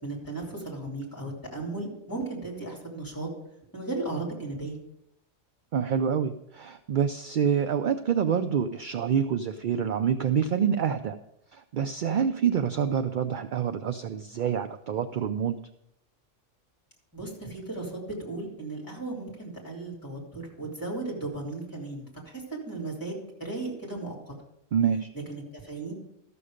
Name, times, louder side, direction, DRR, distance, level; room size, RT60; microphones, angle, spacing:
voice 1, 0.0-3.3 3.7-4.8 17.1-24.3 25.3-25.9, right 2 dB, 15° left, -3 dB, 3.2 m, -36 dB
voice 2, 5.7-11.2 11.5-15.6 24.7-25.1, right 7 dB, 60° right, 9 dB, 0.5 m, -27 dB
13.0 x 7.0 x 5.1 m, 0.82 s
omnidirectional pair, 1.3 m